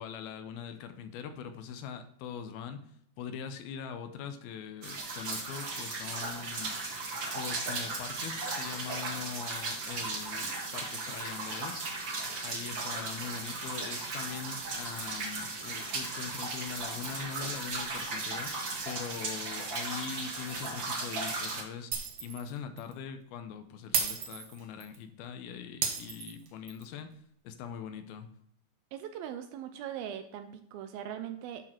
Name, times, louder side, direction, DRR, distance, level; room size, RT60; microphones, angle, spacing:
voice 1, 0.0-2.8 3.2-6.9 7.3-11.8 12.4-18.5 18.9-21.9 22.2-27.1 27.4-28.3, left 7 dB, 80° left, 9 dB, 2.6 m, -42 dB
sound 1, 4.8-21.6, right 3 dB, 45° right, 1.7 m, -36 dB
Shatter, 21.9-22.5 22.8-22.9 23.9-25.0 25.8-26.8, right 6 dB, 60° right, 1.8 m, -33 dB
voice 2, 28.9-31.6, right 10 dB, 80° right, 8 dB, 2.4 m, -40 dB
10.5 x 6.4 x 4.4 m, 0.68 s
omnidirectional pair, 4.3 m